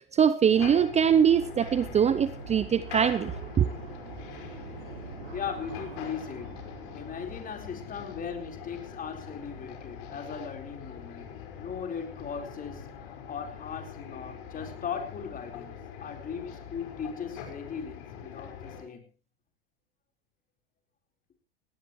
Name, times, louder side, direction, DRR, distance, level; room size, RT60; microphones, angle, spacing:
voice 1, 0.0-3.7, right 8 dB, 20° right, 0.8 m, -23 dB
sound 1, 0.5-18.8, left 8 dB, 60° left, 5.0 m, -43 dB
sound 2, 0.8-15.7, right 7 dB, 80° right, 3.8 m, -48 dB
voice 2, 5.3-6.7 6.9-11.3 11.6-19.0, left 6 dB, 30° left, 4.3 m, -38 dB
18.0 x 18.0 x 3.1 m
hypercardioid pair, 100°, 29 cm